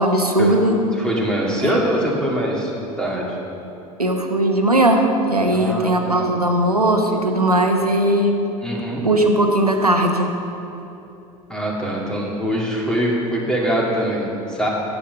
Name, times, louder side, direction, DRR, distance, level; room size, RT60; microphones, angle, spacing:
voice 1, 0.0-0.8 1.6-1.8 4.0-8.3 9.0-10.3, right 1 dB, 90° right, 3 dB, 0.9 m, -18 dB
voice 2, 0.9-2.7 3.0-3.4 5.5-6.3 8.6-9.0 11.5-14.7, equal, 5° left, -3 dB, 2.3 m, -23 dB
10.0 x 7.3 x 6.5 m, 2.9 s
figure-of-eight pair, 75°, 19 cm